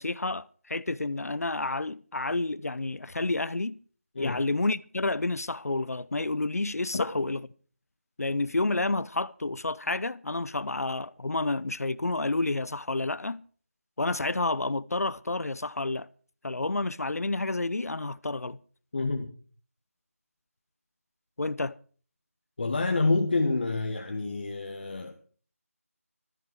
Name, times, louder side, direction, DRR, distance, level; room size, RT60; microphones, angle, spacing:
voice 1, 0.0-3.8 4.2-7.4 8.2-13.4 14.0-16.1 16.4-18.6 21.4-21.8, left 2 dB, 80° left, 0.7 m, -30 dB
voice 2, 18.9-19.3 22.6-25.1, left 3 dB, 40° left, 1.4 m, -28 dB
16.5 x 14.0 x 4.7 m
figure-of-eight pair, 170°, 8 cm